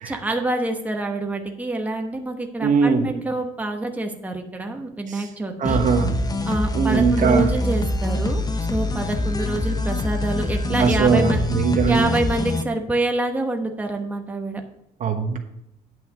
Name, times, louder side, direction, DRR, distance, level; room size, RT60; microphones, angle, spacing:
voice 1, 0.0-5.8 6.5-11.4 11.9-14.6, right 2 dB, 10° right, 3 dB, 1.1 m, -26 dB
voice 2, 2.6-3.1 5.1-5.2 5.6-6.1 6.7-7.5 10.7-12.1 15.0-15.4, right 5 dB, 50° right, 5 dB, 1.2 m, -20 dB
sound 1, 5.7-12.6, left 2 dB, 25° left, 0.9 m, -25 dB
9.4 x 5.6 x 6.3 m, 0.81 s
cardioid pair, 110°, 17 cm